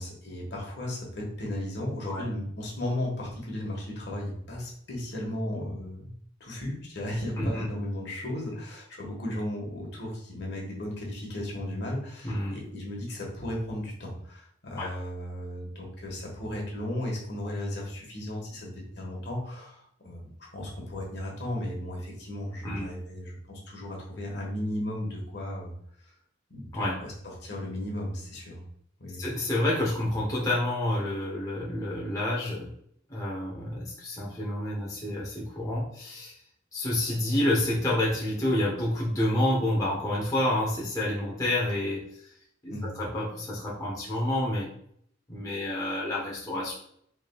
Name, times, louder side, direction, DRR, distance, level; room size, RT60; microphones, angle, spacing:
voice 1, 0.0-6.1 6.4-25.7 26.5-28.6 29.0-29.2 42.7-43.0, left 1 dB, 60° left, -2 dB, 1.4 m, -35 dB
voice 2, 12.2-12.5 14.8-14.9 22.6-22.9 26.7-27.0 29.2-32.7 33.1-36.4 36.7-42.0 42.6-42.7 43.0-44.7 45.3-46.7, left 1 dB, 20° left, -6 dB, 0.8 m, -28 dB
4.7 x 3.2 x 2.3 m, 0.66 s
head